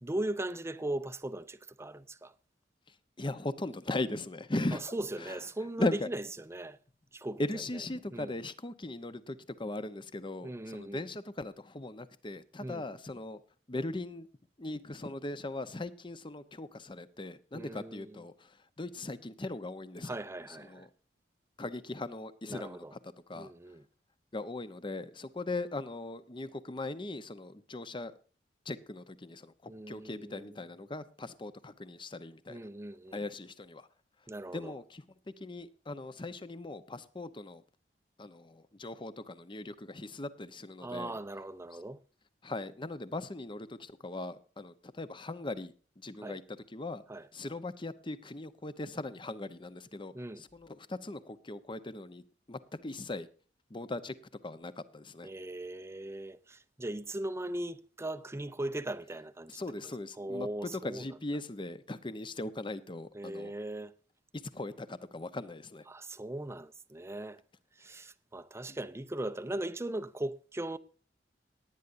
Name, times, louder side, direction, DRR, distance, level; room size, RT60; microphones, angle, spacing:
voice 1, 0.0-2.3 4.7-6.8 7.1-7.8 8.1-8.4 10.4-11.1 12.6-12.9 17.5-18.2 20.0-20.9 22.4-23.0 23.3-23.9 29.7-30.6 32.5-33.2 34.3-34.8 40.8-42.0 46.2-46.4 47.1-47.3 50.1-50.4 55.2-61.2 63.1-63.9 65.9-67.4 67.8-70.8, right 1 dB, 15° right, 0.6 m, -39 dB
voice 2, 3.2-4.9 5.2-5.3 5.8-6.1 7.4-13.4 13.7-14.3 14.6-18.5 18.8-20.2 20.7-20.9 21.6-22.8 23.3-23.5 24.3-28.1 28.7-32.6 33.1-33.9 34.5-35.0 35.4-37.6 38.2-41.1 42.4-46.4 46.7-47.0 47.3-50.1 50.5-53.3 53.7-54.1 54.4-55.3 59.6-63.5 64.5-65.8, left 2 dB, 25° left, 0.8 m, -39 dB
18.5 x 9.8 x 2.6 m
head